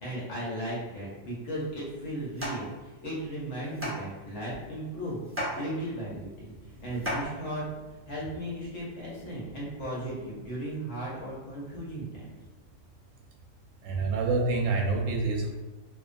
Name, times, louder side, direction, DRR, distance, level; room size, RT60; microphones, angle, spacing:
voice 1, 0.0-5.3 5.5-7.7 8.1-12.3, right 1 dB, 65° left, -7 dB, 1.0 m, -36 dB
sound 1, 1.5-7.9, equal, 15° right, 0.6 m, -38 dB
voice 2, 13.8-15.5, right 3 dB, 75° right, 0 dB, 0.9 m, -27 dB
2.4 x 2.3 x 2.4 m, 1.2 s
omnidirectional pair, 1.4 m